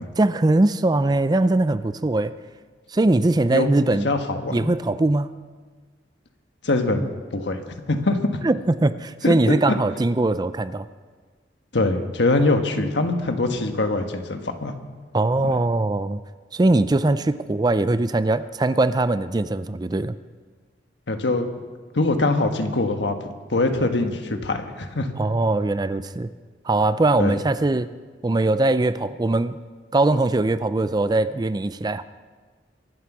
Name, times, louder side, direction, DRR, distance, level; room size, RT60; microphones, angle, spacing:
voice 1, 0.2-2.3 2.9-4.1 4.5-5.3 7.0-7.1 8.4-10.9 15.1-16.2 16.5-20.2 25.2-26.3 26.6-27.9 28.2-29.6 29.9-32.0, right 2 dB, 20° right, 13 dB, 0.4 m, -21 dB
voice 2, 4.0-4.7 6.6-7.1 7.3-7.6 7.9-8.2 9.2-9.3 9.7-9.8 11.7-14.7 15.4-15.5 21.1-21.5 21.9-23.1 23.5-25.1 27.2-27.3, left 2 dB, 80° left, 6 dB, 1.4 m, -23 dB
23.5 x 8.0 x 6.1 m, 1.4 s
head